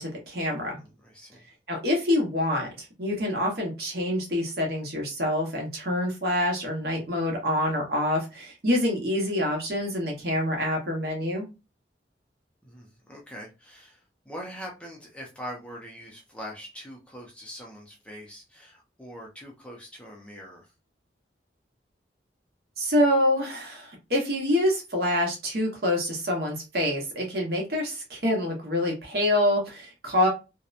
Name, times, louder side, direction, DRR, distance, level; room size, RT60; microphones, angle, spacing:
voice 1, 0.0-0.8 1.7-11.5 22.8-30.3, left 1 dB, 55° right, 0 dB, 0.9 m, -26 dB
voice 2, 0.7-1.4 12.6-20.7, equal, 5° left, -2 dB, 0.5 m, -43 dB
2.8 x 2.0 x 2.4 m, 0.28 s
head